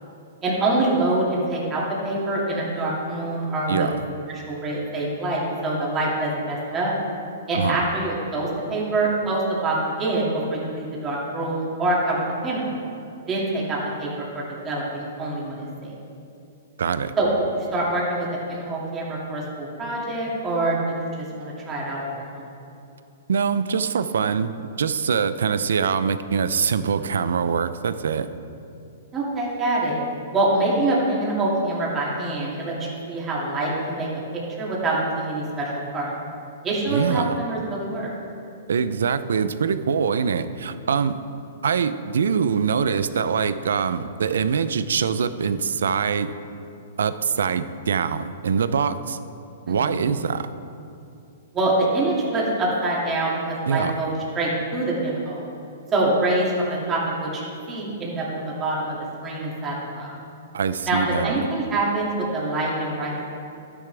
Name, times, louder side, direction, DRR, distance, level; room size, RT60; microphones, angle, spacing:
voice 1, 0.4-3.9 4.3-6.9 7.5-12.9 13.3-15.9 17.2-22.5 29.1-30.0 30.3-34.1 34.6-36.1 36.6-38.1 49.7-50.0 51.5-55.5 55.9-59.0 59.2-60.1 60.9-63.3, right 2 dB, 20° right, -5 dB, 2.5 m, -25 dB
voice 2, 3.7-4.0 7.5-7.8 16.8-17.1 23.3-28.3 36.9-37.3 38.7-41.2 41.6-46.3 47.0-49.2 49.7-50.5 53.7-54.0 60.5-61.4, right 6 dB, 85° right, 13 dB, 0.5 m, -23 dB
12.5 x 9.7 x 3.4 m, 2.6 s
hypercardioid pair, 150°, 0 cm